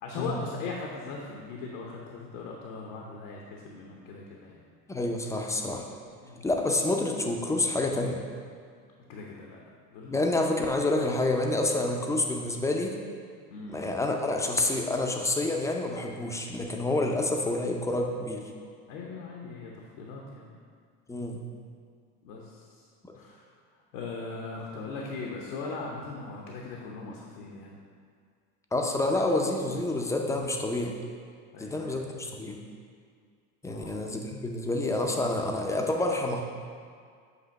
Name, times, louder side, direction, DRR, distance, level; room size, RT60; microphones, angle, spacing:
voice 1, 0.0-4.6 6.2-6.4 9.1-9.6 9.9-10.3 13.5-13.8 18.9-20.5 22.2-22.8 23.2-23.4 23.9-27.8 31.5-32.0 33.7-34.0, left 4 dB, 70° left, -1 dB, 1.0 m, -39 dB
voice 2, 4.9-5.9 6.4-8.2 10.1-13.0 13.7-18.4 21.1-21.4 28.7-31.0 31.6-32.6 33.6-36.4, left 2 dB, 5° left, 1 dB, 0.5 m, -28 dB
8.1 x 2.8 x 5.3 m, 2.1 s
supercardioid pair, 95°, 48 cm